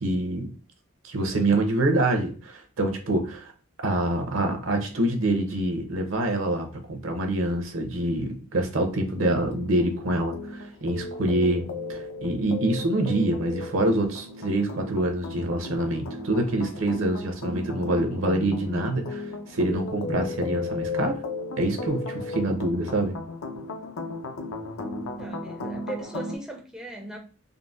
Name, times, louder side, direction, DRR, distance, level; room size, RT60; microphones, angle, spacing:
voice 1, 0.0-0.5 1.0-3.5 3.8-11.6 11.9-21.2 21.6-23.2, right 1 dB, 70° right, 4 dB, 0.7 m, -26 dB
sound 1, 9.2-26.4, left 2 dB, 75° left, 0.5 m, -35 dB
voice 2, 25.2-27.2, right 2 dB, 5° right, 1 dB, 0.4 m, -38 dB
3.8 x 2.1 x 2.4 m, 0.39 s
head